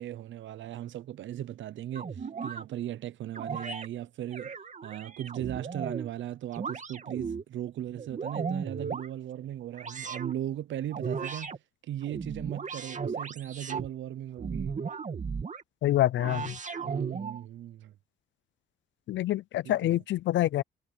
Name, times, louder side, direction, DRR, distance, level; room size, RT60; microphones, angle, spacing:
voice 1, 0.0-4.5 4.8-11.5 11.8-14.8 16.8-17.9 19.6-20.0, right 12 dB, 70° right, 0.8 m, -37 dB
sound 1, 1.9-2.6 3.3-3.9 4.3-6.1 6.5-7.4 7.9-9.1 9.7-10.3 10.9-11.6 12.0-13.9 14.4-15.6 16.2-17.4, right 5 dB, 40° right, 2.6 m, -36 dB
voice 2, 15.8-16.6 19.1-20.6, left 14 dB, 70° left, 0.6 m, -26 dB
cardioid pair, 90°, 20 cm